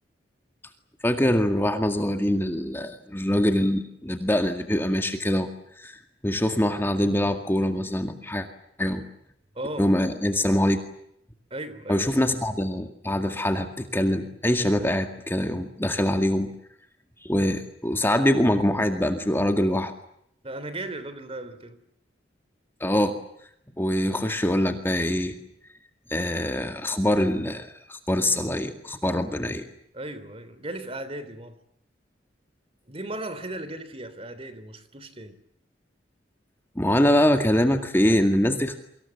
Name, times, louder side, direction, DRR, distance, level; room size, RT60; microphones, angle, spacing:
voice 1, 1.0-5.5 5.8-6.0 6.2-8.5 8.8-9.0 9.8-10.8 11.9-16.5 17.2-19.9 22.8-23.1 23.8-25.4 26.1-29.7 36.8-38.8, left 1 dB, 10° left, 2.0 m, -24 dB
voice 2, 9.5-9.9 11.5-12.3 20.4-21.8 29.9-31.6 32.9-35.4, right 1 dB, 30° right, 3.3 m, -36 dB
29.0 x 25.5 x 7.2 m
head